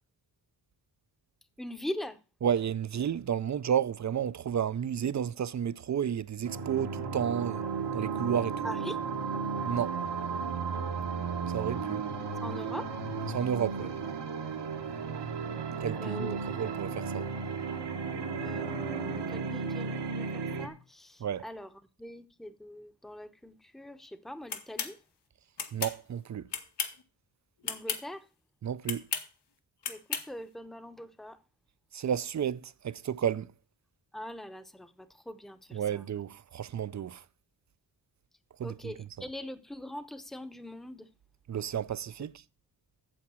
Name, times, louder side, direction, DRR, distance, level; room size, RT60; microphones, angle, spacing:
voice 1, 1.6-2.2 8.6-9.0 10.7-10.9 12.4-12.9 16.0-16.4 18.3-25.0 27.6-28.3 29.9-31.4 34.1-36.0 38.6-41.1, left 1 dB, ahead, 0.8 m, -42 dB
voice 2, 2.4-7.6 7.9-8.5 9.6-10.0 11.5-12.0 13.3-13.9 15.8-17.3 21.2-21.4 25.7-26.4 28.6-29.0 31.9-33.5 35.7-37.2 38.6-38.9 41.5-42.3, right 8 dB, 45° right, 0.5 m, -31 dB
sound 1, 6.4-20.7, right 5 dB, 80° right, 1.4 m, -34 dB
sound 2, 24.5-24.9 25.6-26.0 26.5-27.0 27.6-28.0 28.8-29.3 29.8-30.3, left 6 dB, 80° left, 1.3 m, -34 dB
8.7 x 7.2 x 6.1 m
wide cardioid pair, 90°, 41 cm